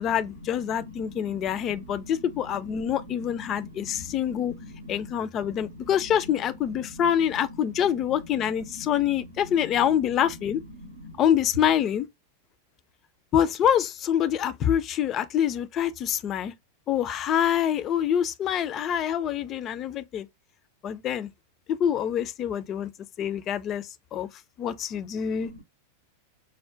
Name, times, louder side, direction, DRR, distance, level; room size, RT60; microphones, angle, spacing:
voice 1, 0.0-4.5 4.9-10.6 11.2-12.1 13.3-16.5 16.9-20.3 20.8-21.3 21.7-22.9 23.2-24.3 24.6-25.5, left 9 dB, 30° left, 0.3 m, -26 dB
voice 2, 0.7-2.1 2.8-3.0 3.3-5.2 5.4-5.9 7.8-7.9 8.7-8.9 10.7-11.2 25.4-25.6, left 1 dB, 80° right, 0.6 m, -44 dB
4.5 x 2.1 x 2.4 m
figure-of-eight pair, 90°, 0 cm